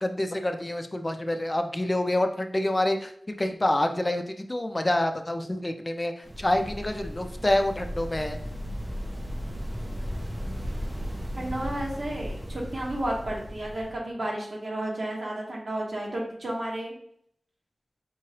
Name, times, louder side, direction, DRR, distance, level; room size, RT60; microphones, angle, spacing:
voice 1, 0.0-3.1 3.4-8.4, left 1 dB, 25° left, 6 dB, 0.4 m, -27 dB
sound 1, 6.2-14.0, equal, 20° right, 0.6 m, -35 dB
voice 2, 11.3-16.9, right 1 dB, 60° right, -3 dB, 1.3 m, -32 dB
4.6 x 3.1 x 2.9 m, 0.67 s
wide cardioid pair, 60°, 0 cm